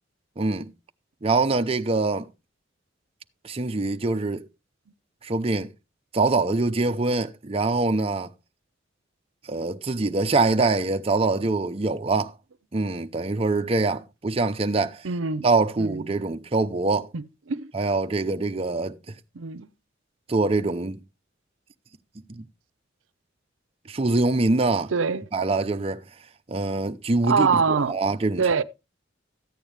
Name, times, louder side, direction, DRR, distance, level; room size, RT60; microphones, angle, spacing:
voice 1, 0.4-0.7 1.2-2.3 3.4-4.5 5.2-5.7 6.1-8.3 9.5-12.3 12.7-15.1 15.4-17.1 17.7-19.0 20.3-21.0 22.3-22.4 23.9-24.9 25.3-26.0 26.5-28.4, right 3 dB, 30° right, 0.6 m, -24 dB
voice 2, 15.0-15.4 15.8-16.0 17.1-17.2 17.5-17.7 19.4-19.7 24.9-25.2 27.3-27.9 28.4-28.6, right 5 dB, 85° right, 0.6 m, -23 dB
14.0 x 9.0 x 3.3 m
head